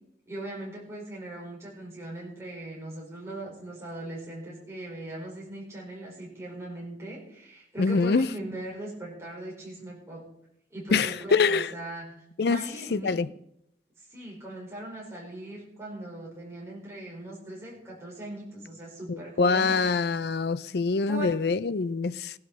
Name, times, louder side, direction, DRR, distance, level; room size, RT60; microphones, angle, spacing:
voice 1, 0.3-10.2 10.7-12.2 12.5-13.2 14.0-19.8 21.1-21.3, right 1 dB, 15° right, 4.8 m, -39 dB
voice 2, 7.8-8.3 10.9-11.7 12.4-12.6 12.9-13.3 19.1-22.3, left 4 dB, 65° left, 0.4 m, -25 dB
17.5 x 12.0 x 4.1 m
head